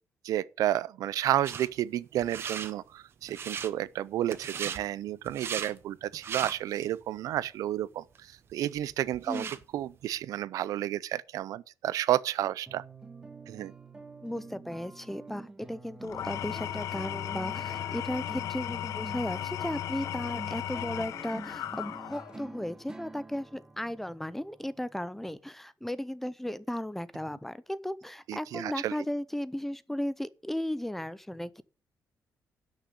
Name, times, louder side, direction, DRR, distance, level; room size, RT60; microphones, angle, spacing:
voice 1, 0.2-9.5 9.7-12.8 13.5-13.7 28.3-28.9, right 12 dB, 80° right, 0.5 m, -31 dB
sound 1, 1.4-1.7 2.2-2.7 3.2-3.7 4.3-4.8 5.2-5.7 6.1-6.9 7.4-7.5 8.1-8.2 8.5-9.6, right 7 dB, 40° right, 1.0 m, -37 dB
sound 2, 12.7-25.4, right 2 dB, 10° right, 1.1 m, -48 dB
voice 2, 14.2-31.6, left 1 dB, 5° left, 0.5 m, -35 dB
Engine / Tools, 16.0-22.5, left 11 dB, 65° left, 0.5 m, -36 dB
11.5 x 6.4 x 8.2 m
cardioid pair, 165°, 6 cm